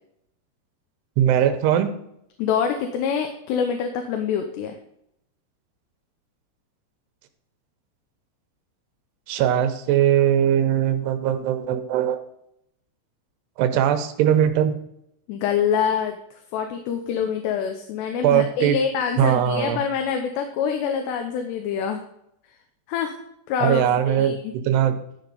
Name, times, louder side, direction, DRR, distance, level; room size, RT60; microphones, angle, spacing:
voice 1, 1.2-1.9 9.3-12.2 13.6-14.8 18.2-18.8 19.2-19.8 23.6-25.0, right 10 dB, 80° right, 8 dB, 2.9 m, -20 dB
voice 2, 2.4-4.8 15.3-22.0 22.9-23.2 23.5-24.5, left 7 dB, 80° left, 5 dB, 3.0 m, -25 dB
12.5 x 5.0 x 5.4 m, 0.76 s
omnidirectional pair, 4.9 m